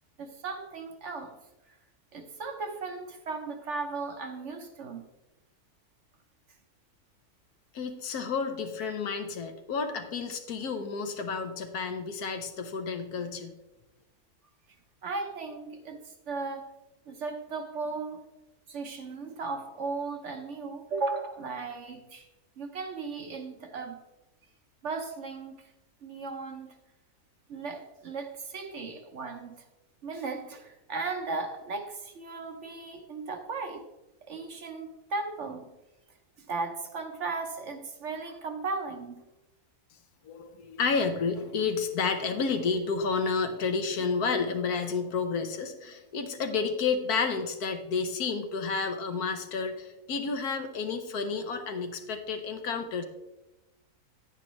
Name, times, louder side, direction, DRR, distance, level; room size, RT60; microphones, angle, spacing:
voice 1, 0.2-1.4 1.7-1.8 2.1-5.0 15.0-16.7 17.1-18.2 18.7-22.3 22.6-24.0 24.8-25.7 26.0-26.7 27.5-29.7 30.0-33.9 34.3-35.8 36.4-39.2, right 4 dB, 55° right, 5 dB, 1.0 m, -36 dB
voice 2, 7.7-13.5 40.2-53.0, left 5 dB, 75° left, 7 dB, 1.4 m, -30 dB
9.8 x 9.7 x 3.1 m, 1.0 s
omnidirectional pair, 1.6 m